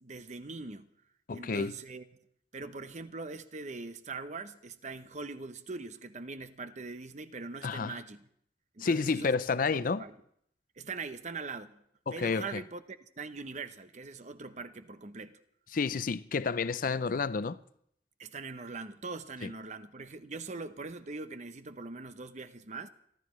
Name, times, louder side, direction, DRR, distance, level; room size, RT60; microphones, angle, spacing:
voice 1, 0.0-0.9 1.3-2.0 2.5-8.3 8.7-9.3 9.7-10.1 10.8-11.8 12.1-15.4 18.2-22.9, right 3 dB, 40° right, 0.8 m, -42 dB
voice 2, 1.3-1.8 7.6-8.0 8.8-10.0 12.1-12.6 15.7-17.6 19.4-19.5, left 4 dB, 50° left, 0.5 m, -30 dB
29.5 x 12.5 x 3.2 m
head